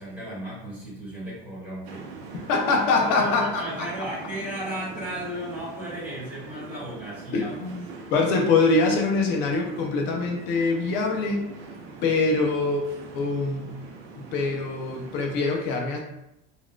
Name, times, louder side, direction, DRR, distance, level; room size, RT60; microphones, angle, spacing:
voice 1, 0.0-2.0 2.9-7.5 7.9-8.0, equal, 5° right, -11 dB, 1.4 m, -35 dB
sound 1, 1.8-15.4, right 4 dB, 70° right, 0.7 m, -42 dB
voice 2, 2.5-3.9 7.3-11.5 12.0-12.8 13.1-13.8 14.1-16.0, left 3 dB, 40° left, 1 dB, 0.5 m, -24 dB
3.9 x 2.4 x 2.2 m, 0.85 s
cardioid pair, 175°, 30 cm